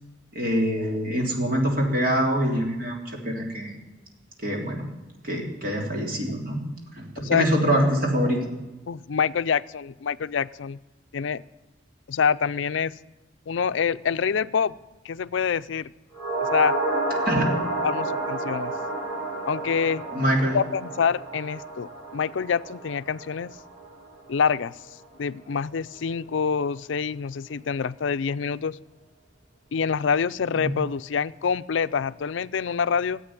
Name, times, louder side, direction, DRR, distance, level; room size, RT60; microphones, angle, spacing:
voice 1, 0.3-3.8 4.4-4.8 5.2-6.6 6.9-8.4 17.2-17.5 20.1-20.6, equal, 50° right, 0 dB, 3.3 m, -24 dB
voice 2, 8.9-10.8 11.1-11.4 12.1-12.9 13.5-14.7 15.0-15.9 16.4-16.8 17.4-17.5 17.8-18.7 19.5-20.0 20.5-23.5 24.3-24.8 25.2-28.8 29.7-33.2, left 6 dB, 75° left, 15 dB, 0.4 m, -26 dB
sound 1, 16.1-24.6 24.9-25.0, right 2 dB, 5° right, 7.4 m, -30 dB
15.5 x 8.4 x 9.7 m, 1.1 s
head